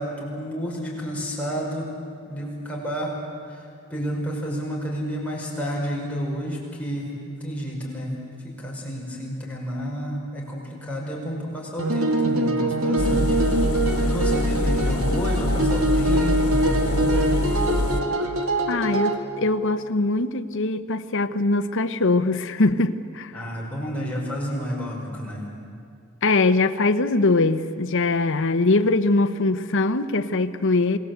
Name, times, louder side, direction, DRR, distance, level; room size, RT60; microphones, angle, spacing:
voice 1, 0.0-1.9 2.2-3.2 3.5-3.6 3.9-8.2 8.4-13.4 14.0-17.4 23.3-25.5, equal, 5° left, -4 dB, 5.6 m, -30 dB
sound 1, 11.8-19.2, right 1 dB, 75° right, 2.2 m, -23 dB
Engine, 13.0-18.0, left 1 dB, 90° left, 1.5 m, -25 dB
voice 2, 18.7-23.3 26.2-31.0, left 2 dB, 60° left, 9 dB, 1.0 m, -22 dB
27.5 x 20.5 x 8.1 m, 2.3 s
head